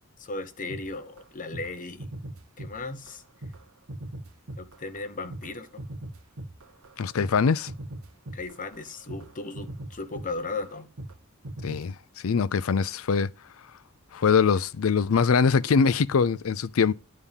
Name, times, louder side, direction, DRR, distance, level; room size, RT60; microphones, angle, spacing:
voice 1, 0.2-2.1 2.6-3.2 4.6-5.7 8.3-10.9 12.3-12.4, left 3 dB, 40° left, 0.9 m, -36 dB
sound 1, 0.7-1.3 1.5-1.7 2.0-3.2 3.4-11.2 11.4-11.9, right 1 dB, 75° right, 1.1 m, -40 dB
voice 2, 7.0-7.7 11.6-11.9 12.2-13.3 14.1-16.9, left 5 dB, 75° left, 0.5 m, -23 dB
9.9 x 3.6 x 7.1 m
head